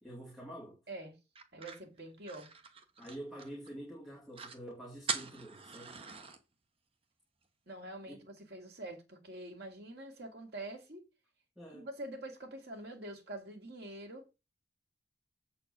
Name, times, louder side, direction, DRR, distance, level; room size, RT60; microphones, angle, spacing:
voice 1, 0.0-0.8 3.0-6.0 8.1-8.3 11.6-11.9, right 1 dB, ahead, 2.3 m, -47 dB
sound 1, 1.4-3.7 4.0-4.1 4.3-4.6 5.1-6.4, right 5 dB, 30° right, 1.0 m, -42 dB
voice 2, 1.5-2.5 7.7-11.0 11.7-14.3, right 1 dB, 65° right, 2.4 m, -45 dB
7.8 x 4.4 x 6.5 m
head